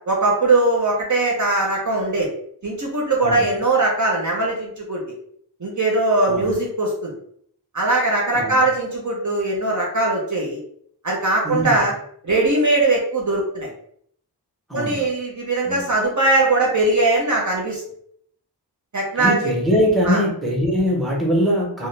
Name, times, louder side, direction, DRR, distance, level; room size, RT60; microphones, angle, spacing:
voice 1, 0.1-2.3 2.6-5.0 5.6-7.1 7.7-10.6 11.0-11.9 12.2-13.7 14.7-17.8 18.9-19.5 20.0-20.2, right 2 dB, 45° right, -2 dB, 0.6 m, -20 dB
voice 2, 3.2-3.5 6.3-6.6 8.3-8.6 11.4-11.8 14.7-15.0 15.6-15.9 19.1-21.9, equal, ahead, -2 dB, 0.7 m, -22 dB
2.1 x 2.0 x 3.1 m, 0.66 s
wide cardioid pair, 60°, 41 cm